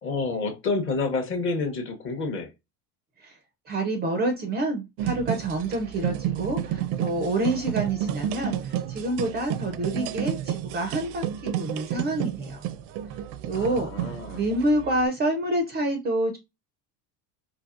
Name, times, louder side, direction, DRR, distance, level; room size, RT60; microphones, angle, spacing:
voice 1, 0.0-2.5 13.5-14.4, left 3 dB, 30° left, 0.7 m, -29 dB
voice 2, 3.7-12.6 13.1-13.2 13.5-16.4, right 1 dB, 25° right, 0.4 m, -28 dB
sound 1, 5.0-15.1, right 11 dB, 75° right, 0.5 m, -31 dB
4.1 x 2.7 x 2.4 m
cardioid pair, 155°, 42 cm